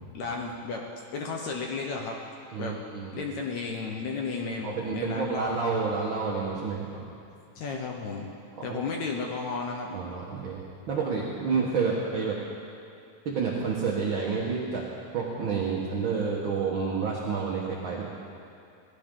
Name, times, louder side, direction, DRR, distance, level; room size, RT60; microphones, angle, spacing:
voice 1, 0.1-0.8 1.1-2.2 2.6-2.7 3.1-5.7 7.6-8.3 8.6-9.9, left 4 dB, 65° left, 0 dB, 2.0 m, -33 dB
voice 2, 2.5-3.2 4.6-7.1 8.6-8.8 9.9-12.4 13.2-14.8 15.1-18.1, right 5 dB, 60° right, -4 dB, 1.3 m, -29 dB
19.5 x 15.5 x 3.8 m, 2.5 s
omnidirectional pair, 4.0 m